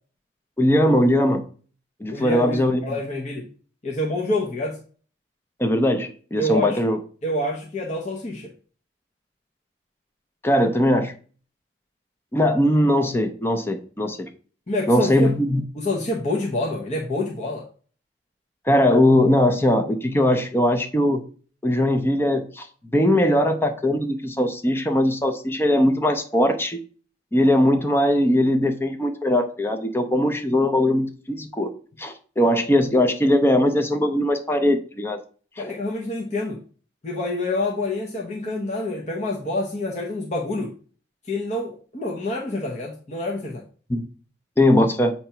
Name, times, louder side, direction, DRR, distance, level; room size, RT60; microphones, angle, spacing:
voice 1, 0.6-1.4 2.0-2.8 5.6-7.0 10.4-11.1 12.3-14.3 14.9-15.6 18.7-21.2 21.6-22.7 22.9-26.8 27.3-31.7 32.0-35.2 35.6-35.8 43.9-44.0 44.6-45.1, left 1 dB, 10° left, 6 dB, 0.5 m, -20 dB
voice 2, 2.1-3.5 3.8-4.8 6.4-6.8 7.2-8.5 14.7-15.4 15.8-17.6 35.6-36.6 37.0-40.7 41.2-43.6, left 1 dB, 40° left, -2 dB, 0.8 m, -27 dB
7.8 x 2.9 x 5.6 m, 0.42 s
head